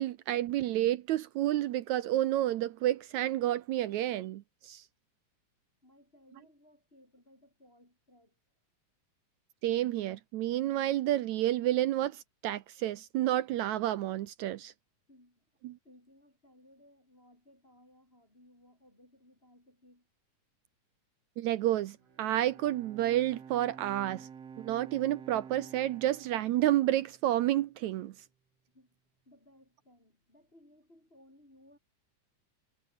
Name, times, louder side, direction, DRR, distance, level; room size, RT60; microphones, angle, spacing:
voice 1, 0.0-4.8 9.6-14.7 15.6-15.8 21.4-24.3 24.6-28.1, right 13 dB, 75° right, 1.8 m, -30 dB
voice 2, 5.8-8.4 15.1-15.5 15.8-20.1 28.7-29.0 29.2-31.8, left 1 dB, 15° left, 7.8 m, -61 dB
Bowed string instrument, 21.9-27.4, right 7 dB, 50° right, 3.5 m, -50 dB
omnidirectional pair, 3.9 m